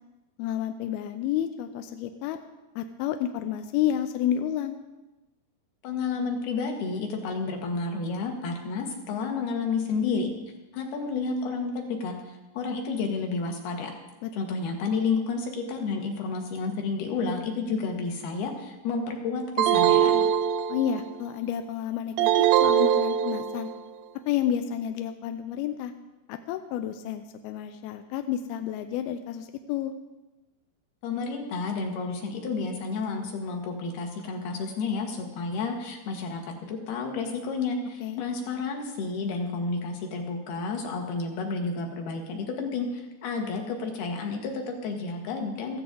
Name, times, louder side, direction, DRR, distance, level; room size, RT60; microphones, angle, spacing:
voice 1, 0.4-2.4 2.8-4.8 14.2-14.6 20.7-23.7 24.3-25.9 26.3-29.9 38.0-38.2, left 10 dB, 80° left, 7 dB, 2.3 m, -30 dB
voice 2, 5.8-10.3 10.7-13.9 14.3-20.3 31.0-36.4 36.7-45.8, left 4 dB, 65° left, 2 dB, 3.4 m, -31 dB
sound 1, 19.6-21.1 22.2-23.8, right 10 dB, 80° right, 2.7 m, -22 dB
15.5 x 15.0 x 3.8 m, 1.1 s
omnidirectional pair, 5.0 m